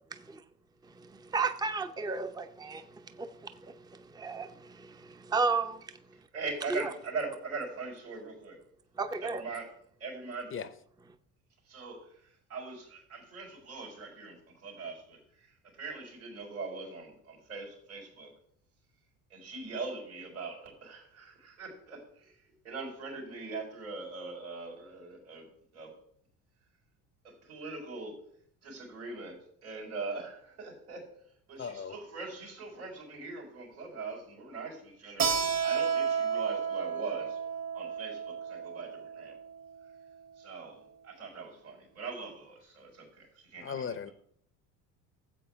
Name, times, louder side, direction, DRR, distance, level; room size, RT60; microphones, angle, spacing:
voice 1, 1.3-2.8 3.2-3.7 4.1-5.8 6.7-6.8 9.0-9.4, right 4 dB, 10° right, 0.7 m, -32 dB
voice 2, 6.3-8.6 9.2-9.7 10.0-10.7 11.7-12.1 12.5-18.3 19.3-22.3 22.6-25.9 27.2-28.2 28.6-31.1 31.5-37.4 37.7-39.4 40.4-44.1, right 4 dB, 90° right, 4.3 m, -41 dB
voice 3, 31.6-31.9 43.6-44.1, left 6 dB, 30° left, 0.7 m, -37 dB
Keyboard (musical), 35.2-40.5, right 7 dB, 40° right, 1.3 m, -32 dB
14.0 x 7.8 x 3.5 m
hypercardioid pair, 65°, 42 cm